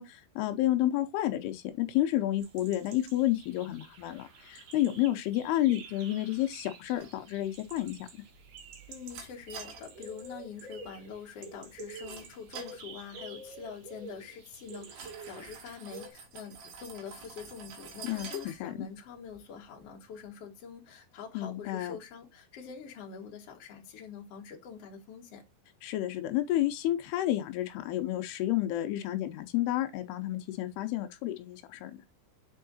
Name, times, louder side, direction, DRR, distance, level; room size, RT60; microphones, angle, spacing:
voice 1, 0.0-8.1 18.0-18.9 21.3-22.0 25.8-32.0, left 14 dB, 85° left, 2.8 m, -30 dB
sound 1, 2.4-16.1, right 3 dB, 60° right, 2.8 m, -49 dB
sound 2, 7.0-20.3, right 5 dB, 85° right, 4.0 m, -51 dB
voice 2, 8.9-25.4, left 6 dB, 50° left, 2.2 m, -45 dB
7.2 x 4.6 x 4.1 m
omnidirectional pair, 4.7 m